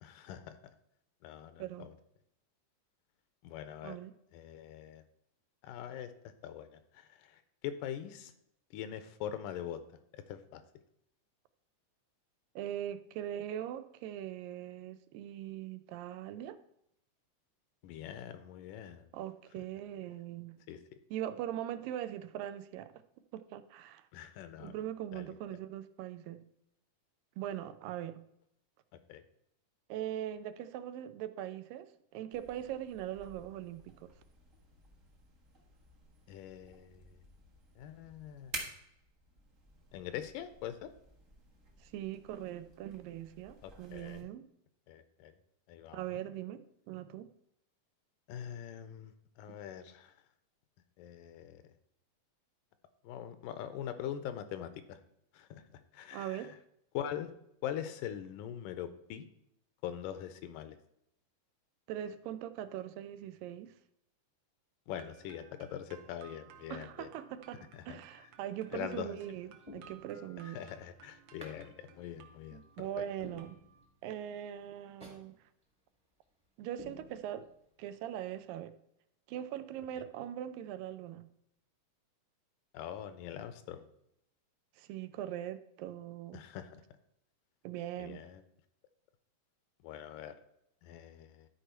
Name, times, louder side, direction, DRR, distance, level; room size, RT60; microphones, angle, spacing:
voice 1, 0.0-0.7 1.2-1.9 3.4-4.0 4.3-5.0 5.6-6.1 6.4-8.3 8.7-9.8 10.1-10.6 17.8-19.1 19.6-19.7 20.7-20.8 24.1-24.8 25.1-25.3 29.1-29.2 36.3-37.2 37.8-38.6 39.9-40.9 43.6-44.3 44.9-45.3 45.7-46.2 48.3-50.1 51.0-51.6 53.0-55.0 55.3-56.5 56.9-57.3 57.6-59.3 59.8-60.8 64.9-67.1 67.7-68.0 68.7-69.1 70.5-72.9 82.7-83.9 86.3-86.8 88.0-88.4 89.8-90.3 90.8-91.5, left 10 dB, 80° left, 11 dB, 2.2 m, -43 dB
voice 2, 12.6-16.6 19.1-20.6 21.1-22.9 23.3-24.1 24.6-26.5 27.4-28.3 29.9-34.1 41.8-44.4 45.9-47.3 56.1-56.6 61.9-63.7 66.7-70.6 72.5-73.6 74.0-75.3 76.6-77.5 77.8-78.7 79.3-81.3 84.8-86.4 87.6-88.3, right 11 dB, 90° right, 12 dB, 2.3 m, -41 dB
sound 1, 32.3-44.2, right 2 dB, 50° right, 0.9 m, -52 dB
sound 2, 64.9-73.9, right 7 dB, 70° right, 2.1 m, -59 dB
sound 3, 68.7-69.0 69.6-70.5 71.4-71.6 72.0-72.1 72.6-72.7 73.2-74.1 74.4-74.5 75.0-75.3 75.6-75.7 76.2-76.4 76.8-77.7 78.0-78.1, left 2 dB, 15° right, 1.0 m, -52 dB
12.0 x 4.7 x 4.5 m, 0.75 s
omnidirectional pair, 3.9 m